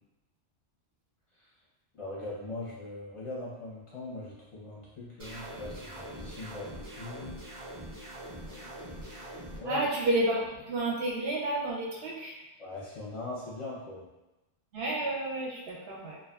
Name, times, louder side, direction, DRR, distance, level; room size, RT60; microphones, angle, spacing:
voice 1, 1.9-7.4 8.4-9.3 9.5-9.8 12.6-14.1, left 2 dB, 40° left, -7 dB, 0.5 m, -41 dB
sound 1, 5.2-9.6, right 1 dB, 35° right, 0.5 m, -43 dB
voice 2, 9.6-12.4 14.7-16.2, right 1 dB, 65° right, -2 dB, 0.8 m, -30 dB
2.5 x 2.3 x 2.3 m, 1.0 s
omnidirectional pair, 1.2 m